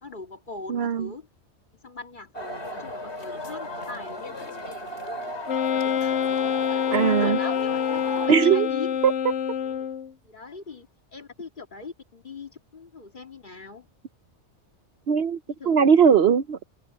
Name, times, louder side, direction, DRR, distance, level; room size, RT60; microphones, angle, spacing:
voice 1, 0.0-1.3 1.8-4.9 5.4-6.2 6.6-9.0 9.6-9.9 10.2-13.9 15.5-15.9, left 3 dB, 40° left, 2.1 m, -41 dB
voice 2, 0.7-1.1 6.9-7.4 8.3-8.7 15.1-15.4 15.7-16.6, right 7 dB, 60° right, 0.9 m, -19 dB
sound 1, 2.3-8.3, left 1 dB, 60° left, 3.4 m, -35 dB
Wind instrument woodwind instrument, 5.5-10.1, left 8 dB, 80° left, 1.1 m, -26 dB
omnidirectional pair, 1.2 m